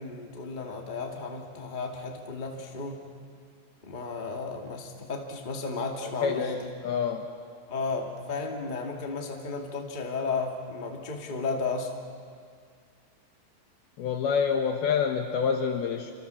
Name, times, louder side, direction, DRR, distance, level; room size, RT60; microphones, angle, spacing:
voice 1, 0.0-3.0 3.8-6.6 7.7-11.9, left 4 dB, 40° left, 1 dB, 0.6 m, -33 dB
voice 2, 6.0-6.5 6.8-7.3 14.0-16.1, left 6 dB, 75° left, 4 dB, 2.3 m, -27 dB
27.5 x 27.0 x 7.1 m, 2.1 s
omnidirectional pair, 5.8 m